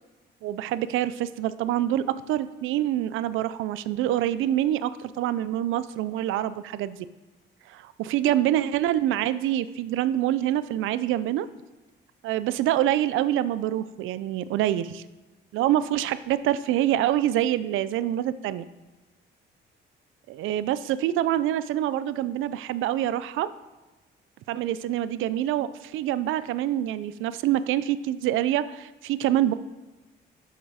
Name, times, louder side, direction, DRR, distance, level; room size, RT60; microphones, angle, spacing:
voice 1, 0.4-7.1 7.7-11.5 12.2-15.0 15.5-18.6 20.3-23.5 24.5-29.5, right 12 dB, 85° right, 15 dB, 0.4 m, -26 dB
6.8 x 6.5 x 4.9 m, 1.2 s
cardioid pair, 90°, 20 cm